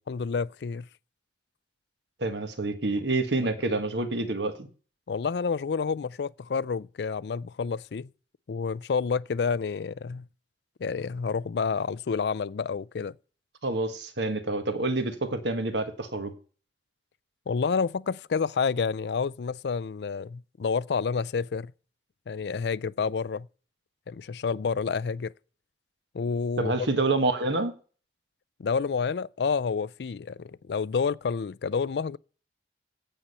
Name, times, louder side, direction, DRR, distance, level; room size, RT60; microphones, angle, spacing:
voice 1, 0.1-0.9 3.4-3.8 5.1-8.1 8.5-10.3 10.8-13.1 17.5-21.7 22.3-23.5 24.1-25.3 26.1-27.1 28.6-32.2, left 5 dB, 75° left, 0.4 m, -29 dB
voice 2, 2.2-4.7 13.6-16.3 26.6-27.7, right 2 dB, 85° right, 1.6 m, -27 dB
8.8 x 8.2 x 5.5 m
head